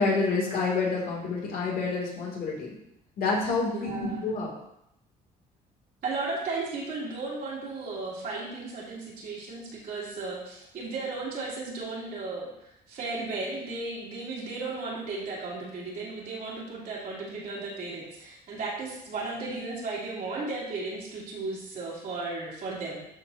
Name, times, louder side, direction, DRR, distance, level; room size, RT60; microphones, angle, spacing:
voice 1, 0.0-2.7 3.2-3.7 4.2-4.5, left 4 dB, 60° left, -3 dB, 2.6 m, -27 dB
voice 2, 3.7-4.3 6.0-12.5 12.9-23.0, right 3 dB, 55° right, -5 dB, 2.8 m, -35 dB
12.5 x 4.2 x 2.8 m, 0.81 s
cardioid pair, 110°, 17 cm